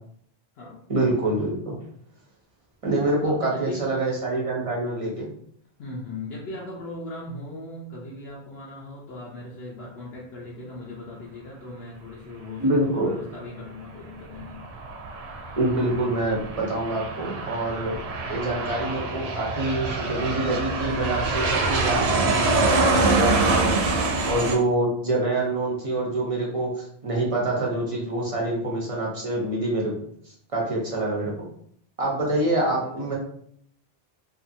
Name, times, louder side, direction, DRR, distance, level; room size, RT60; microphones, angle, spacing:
voice 1, 0.9-1.8 2.8-5.3 12.6-13.2 15.5-18.0 18.3-23.8 24.3-29.9 30.5-31.3 32.0-33.1, right 2 dB, 40° right, -3 dB, 0.6 m, -26 dB
voice 2, 3.2-3.9 5.8-14.6 23.9-24.4 32.3-33.1, left 2 dB, 80° left, -4 dB, 0.9 m, -38 dB
Aircraft, 14.3-24.6, right 3 dB, 90° right, 0.8 m, -25 dB
2.7 x 2.4 x 2.6 m, 0.65 s
omnidirectional pair, 1.1 m